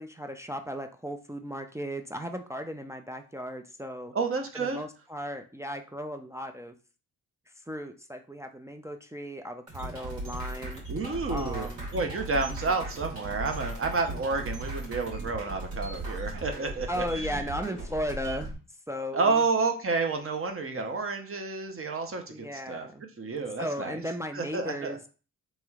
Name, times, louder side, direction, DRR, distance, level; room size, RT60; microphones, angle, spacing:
voice 1, 0.0-4.1 4.5-6.7 7.6-10.8 11.3-11.9 12.5-12.8 16.9-18.5 18.9-19.4 22.3-23.0 23.6-25.0, equal, 10° right, 5 dB, 0.3 m, -36 dB
voice 2, 4.1-4.8 10.9-17.0 19.1-22.9 23.2-24.0 24.3-25.0, right 4 dB, 35° right, 4 dB, 0.8 m, -30 dB
sound 1, 9.7-18.5, right 2 dB, 80° right, 1.5 m, -37 dB
3.0 x 3.0 x 2.4 m, 0.36 s
supercardioid pair, 45°, 40 cm